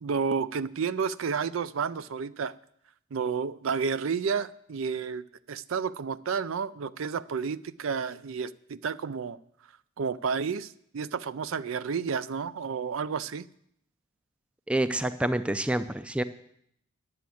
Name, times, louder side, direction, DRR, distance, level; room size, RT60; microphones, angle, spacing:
voice 1, 0.0-2.5 3.1-9.4 10.0-13.4, right 5 dB, 70° right, 16 dB, 0.4 m, -31 dB
voice 2, 14.7-16.2, right 1 dB, 5° right, 13 dB, 0.4 m, -27 dB
10.5 x 7.7 x 8.4 m, 0.71 s
head